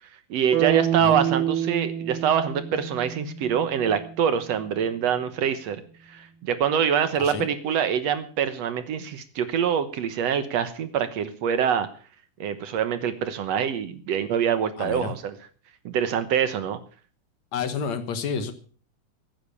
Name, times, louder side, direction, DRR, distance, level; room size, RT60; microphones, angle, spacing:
voice 1, 0.3-5.8 6.1-11.9 12.4-15.4 15.9-16.8, right 8 dB, 65° right, 11 dB, 2.0 m, -25 dB
sound 1, 0.5-4.6, right 10 dB, 85° right, 3.3 m, -28 dB
voice 2, 14.8-15.1 17.5-18.5, left 6 dB, 65° left, 11 dB, 2.4 m, -30 dB
15.0 x 10.5 x 6.9 m, 0.42 s
omnidirectional pair, 3.6 m